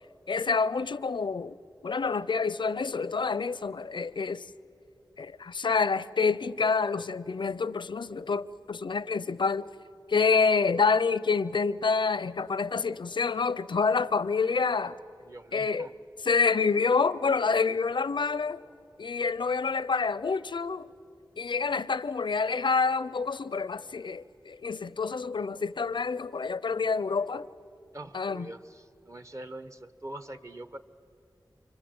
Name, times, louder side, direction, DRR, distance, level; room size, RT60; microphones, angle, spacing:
voice 1, 0.3-1.6 1.8-4.5 5.2-9.7 10.1-15.0 15.5-15.9 16.2-18.6 19.0-20.9 21.4-27.5 28.1-28.5, left 4 dB, 80° left, 0.6 m, -27 dB
voice 2, 15.2-15.9 27.9-30.8, right 1 dB, 40° right, 1.1 m, -43 dB
29.5 x 25.0 x 7.9 m
wide cardioid pair, 65°, 8 cm